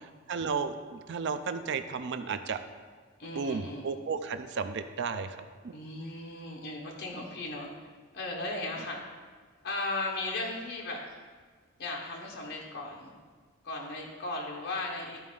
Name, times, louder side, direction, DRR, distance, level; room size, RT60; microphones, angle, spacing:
voice 1, 0.3-2.6 3.3-5.4 5.6-5.7, right 5 dB, 55° right, 9 dB, 0.4 m, -33 dB
voice 2, 3.2-3.9 5.7-7.9 8.1-9.0 9.6-11.0 11.8-13.1 13.6-15.2, left 2 dB, 50° left, -1 dB, 1.0 m, -36 dB
12.5 x 4.3 x 3.7 m, 1.5 s
head